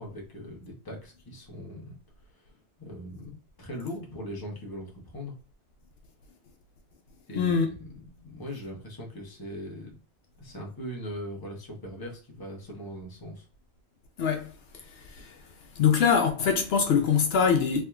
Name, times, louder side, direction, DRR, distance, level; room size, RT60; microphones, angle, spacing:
voice 1, 0.0-2.0 2.3-2.5 2.8-5.3 7.3-10.0 10.4-13.5, equal, 20° left, 0.8 m, -40 dB
voice 2, 7.4-7.7 14.2-14.5 14.9-15.4 15.8-17.8, left 6 dB, 70° left, 0.8 m, -23 dB
3.4 x 2.8 x 2.3 m
omnidirectional pair, 1.1 m